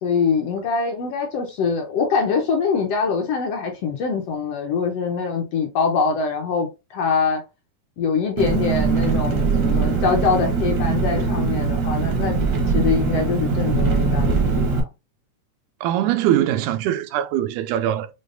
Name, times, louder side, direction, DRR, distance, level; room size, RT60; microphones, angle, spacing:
voice 1, 0.0-7.4 8.0-12.4 12.7-14.8, left 5 dB, 70° left, 1.5 m, -23 dB
Engine, 8.4-14.8, right 5 dB, 70° right, 1.0 m, -21 dB
voice 2, 15.8-18.1, right 12 dB, 90° right, 2.0 m, -22 dB
6.4 x 2.3 x 2.5 m
omnidirectional pair, 3.4 m